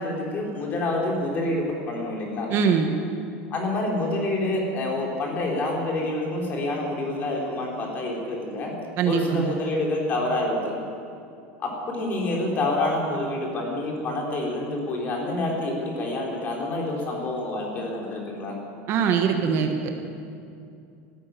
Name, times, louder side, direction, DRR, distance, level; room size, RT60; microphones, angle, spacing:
voice 1, 0.0-2.5 3.5-8.8 9.1-10.8 11.6-18.5, left 1 dB, 30° left, -1 dB, 3.6 m, -27 dB
voice 2, 2.5-2.9 9.0-9.5 18.9-20.0, right 7 dB, 40° right, 5 dB, 1.2 m, -23 dB
13.0 x 12.0 x 9.2 m, 2.5 s
supercardioid pair, 160°, 6 cm